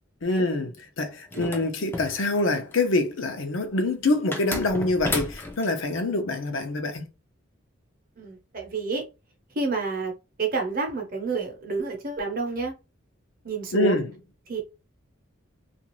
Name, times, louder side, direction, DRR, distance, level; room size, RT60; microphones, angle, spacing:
voice 1, 0.2-7.1 13.7-14.1, left 2 dB, 70° left, 0.6 m, -25 dB
sound 1, 1.3-2.7 4.3-5.7, left 2 dB, 10° left, 0.4 m, -32 dB
voice 2, 1.3-1.8 8.2-9.0 9.5-10.1 10.4-12.7 13.4-14.0 14.5-14.8, right 4 dB, 45° right, 0.8 m, -29 dB
2.5 x 2.4 x 3.0 m
head